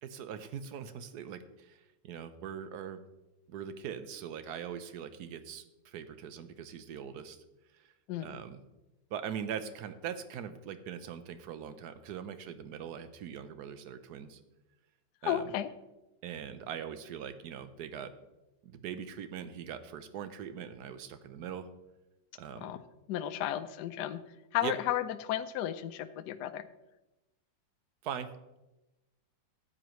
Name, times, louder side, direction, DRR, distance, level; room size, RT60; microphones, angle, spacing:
voice 1, 0.0-3.0 3.5-7.4 7.7-7.9 8.2-8.6 9.1-14.4 15.2-15.4 16.2-18.1 18.6-21.7 22.3-22.7 24.6-24.7 28.0-28.3, right 8 dB, 65° right, 11 dB, 1.2 m, -41 dB
voice 2, 15.2-15.7 22.6-22.8 23.1-24.2 24.5-26.6, left 12 dB, 70° left, 10 dB, 1.0 m, -33 dB
13.5 x 8.9 x 3.1 m, 1.0 s
omnidirectional pair, 2.0 m